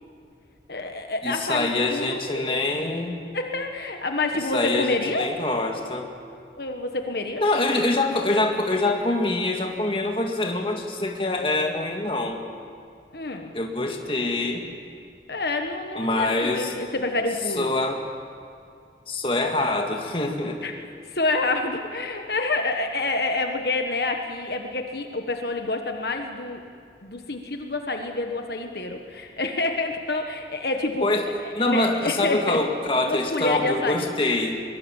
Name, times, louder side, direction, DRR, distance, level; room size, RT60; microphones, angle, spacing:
voice 1, 0.7-2.7 3.3-5.3 6.6-7.8 13.1-13.5 15.3-17.7 20.6-20.7 21.1-26.6 27.0-31.1 31.4-32.6 33.0-34.2, left 2 dB, 65° left, 4 dB, 1.4 m, -28 dB
voice 2, 1.2-3.2 4.3-6.1 7.4-12.4 13.5-14.7 16.0-16.7 17.6-18.0 19.1-20.7 31.0-31.3 31.5-34.6, left 2 dB, 30° left, 2 dB, 2.0 m, -25 dB
23.0 x 21.5 x 7.3 m, 2.3 s
head